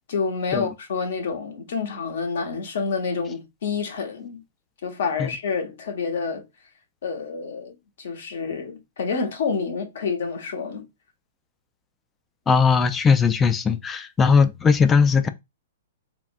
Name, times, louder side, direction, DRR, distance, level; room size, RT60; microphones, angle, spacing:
voice 1, 0.1-4.4 4.8-6.4 7.0-10.9, left 5 dB, 70° left, 1.0 m, -28 dB
voice 2, 12.5-15.3, left 5 dB, 15° left, 0.3 m, -19 dB
3.5 x 2.3 x 2.5 m
hypercardioid pair, 130°, 0 cm